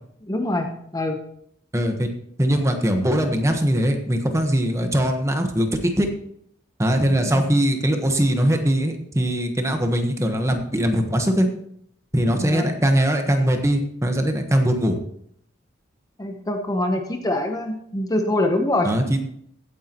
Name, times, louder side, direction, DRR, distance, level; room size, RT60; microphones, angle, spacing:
voice 1, 0.2-1.2 7.2-7.4 12.4-12.7 16.2-18.9, left 1 dB, 20° left, 4 dB, 0.9 m, -24 dB
voice 2, 1.7-2.1 2.4-6.1 6.8-11.5 12.1-15.0 18.8-19.2, equal, 15° right, 5 dB, 1.3 m, -21 dB
16.0 x 9.3 x 3.0 m, 0.68 s
head